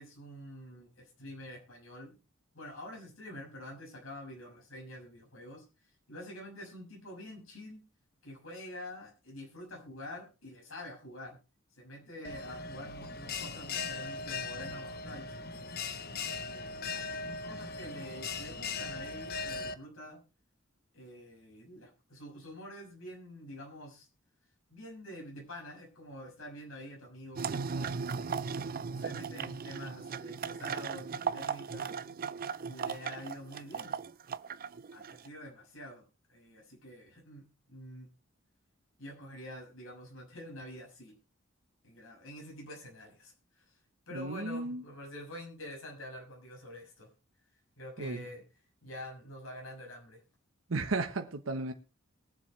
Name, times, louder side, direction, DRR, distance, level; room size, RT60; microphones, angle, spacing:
voice 1, 0.0-2.2 2.5-5.6 6.1-7.8 8.2-11.4 11.7-15.7 16.4-17.0 17.4-20.2 20.9-24.1 24.7-28.4 28.9-32.0 32.7-33.9 34.9-36.0 36.3-38.1 39.0-41.1 41.8-43.7 44.1-47.1 47.8-48.4 48.8-50.2, left 1 dB, 85° left, 6.2 m, -47 dB
Bell, 12.2-19.7, left 4 dB, 50° left, 1.0 m, -39 dB
sound 1, 27.4-35.3, right 5 dB, 45° right, 0.5 m, -37 dB
voice 2, 44.1-44.8 48.0-48.2 50.7-51.7, right 3 dB, 75° right, 1.0 m, -34 dB
22.0 x 7.5 x 3.3 m
head